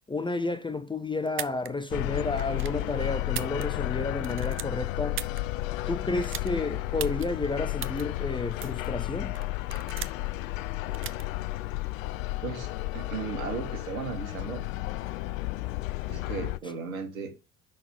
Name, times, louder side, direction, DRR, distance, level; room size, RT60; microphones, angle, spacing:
voice 1, 0.1-5.2 5.9-9.3, left 3 dB, 10° left, 0.6 m, -31 dB
sound 1, 1.3-1.7 2.4-2.8 3.2-3.9 4.2-5.4 6.2-6.5 7.0-7.3 7.8-8.0 8.6-8.9 9.3-10.3 10.9-11.2, right 11 dB, 30° right, 0.5 m, -37 dB
sound 2, 1.9-16.6, left 16 dB, 70° left, 0.5 m, -32 dB
voice 2, 12.9-14.6 16.1-17.3, right 5 dB, 75° right, 1.7 m, -35 dB
5.9 x 4.1 x 5.3 m
figure-of-eight pair, 60°, 42 cm